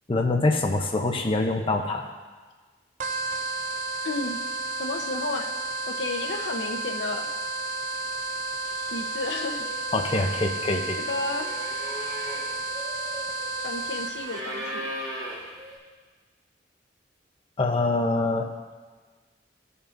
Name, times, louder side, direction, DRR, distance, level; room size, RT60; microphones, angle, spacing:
voice 1, 0.1-2.1 9.9-11.0 17.6-18.5, left 2 dB, 30° left, 3 dB, 0.6 m, -24 dB
sound 1, 3.0-14.4, right 2 dB, 45° right, 0.6 m, -32 dB
voice 2, 4.0-4.4 4.8-5.5 5.9-7.3 8.9-9.7 10.1-10.2 11.1-11.5 13.6-14.8, left 3 dB, 80° left, 5 dB, 0.7 m, -32 dB
sound 2, 8.2-8.4 8.6-15.8, equal, 25° right, 2.4 m, -39 dB
15.5 x 5.4 x 2.5 m, 1.4 s
head